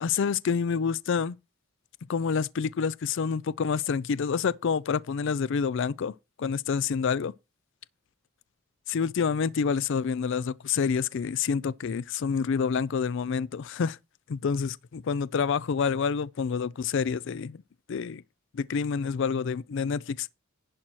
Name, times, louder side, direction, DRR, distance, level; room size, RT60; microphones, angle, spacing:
voice 1, 0.0-1.4 2.1-6.1 6.4-7.3 8.9-14.0 14.3-17.6 17.9-18.2 18.5-20.3, left 6 dB, 60° left, 0.4 m, -28 dB
11.0 x 4.4 x 6.2 m
head